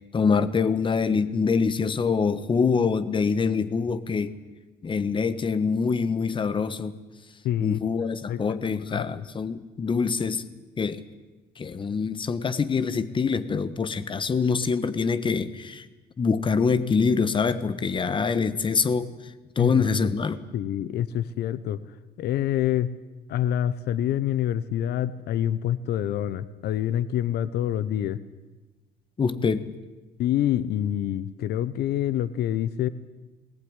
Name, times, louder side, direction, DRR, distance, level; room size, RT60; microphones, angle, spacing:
voice 1, 0.1-4.3 4.8-7.0 7.6-10.4 10.8-11.0 11.6-15.8 16.2-19.1 19.6-20.4 29.2-29.6, left 5 dB, 30° left, 14 dB, 1.4 m, -25 dB
voice 2, 7.4-7.8 8.3-8.6 8.9-9.3 19.6-19.9 20.5-21.8 22.2-22.9 23.3-28.2 30.2-32.9, left 11 dB, 75° left, 16 dB, 1.0 m, -26 dB
21.5 x 19.0 x 9.8 m, 1.2 s
cardioid pair, 110°, 17 cm